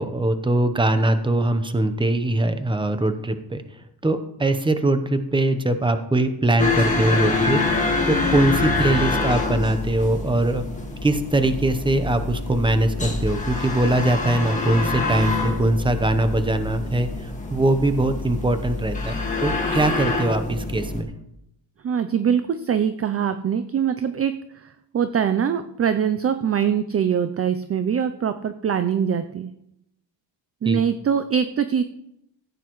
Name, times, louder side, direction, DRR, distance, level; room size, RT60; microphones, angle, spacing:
voice 1, 0.0-3.6 4.0-7.6 8.1-10.6 11.0-21.1 30.7-30.8, right 2 dB, 10° right, 9 dB, 0.8 m, -22 dB
sound 1, 6.6-21.0, left 3 dB, 15° left, 1.8 m, -26 dB
voice 2, 21.8-29.5 30.6-31.8, right 8 dB, 35° right, 10 dB, 0.4 m, -23 dB
15.5 x 9.1 x 3.1 m, 0.82 s
wide cardioid pair, 135°, 45 cm